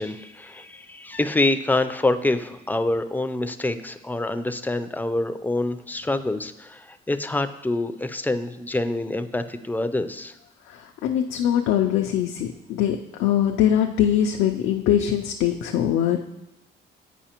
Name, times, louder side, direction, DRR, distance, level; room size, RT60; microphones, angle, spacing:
voice 1, 0.0-10.3, left 2 dB, 10° left, 10 dB, 0.4 m, -26 dB
voice 2, 10.7-16.2, left 10 dB, 85° left, 3 dB, 0.4 m, -22 dB
9.0 x 4.7 x 2.9 m, 0.88 s
cardioid pair, 90°, 20 cm